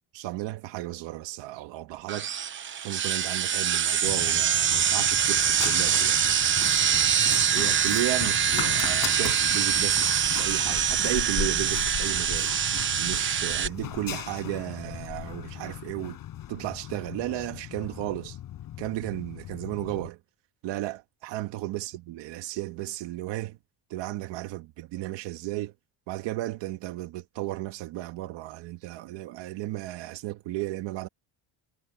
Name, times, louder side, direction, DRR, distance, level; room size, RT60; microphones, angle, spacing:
voice 1, 0.1-2.3 2.8-6.2 7.5-12.6 13.0-16.2 16.5-18.4 18.8-20.2 20.6-23.6 23.9-25.7 26.1-31.1, right 16 dB, 80° right, 1.6 m, -34 dB
sound 1, 2.1-13.7, right 8 dB, 25° right, 0.9 m, -24 dB
Run, 4.0-20.1, left 12 dB, 50° left, 7.1 m, -38 dB
cardioid pair, 175°, 43 cm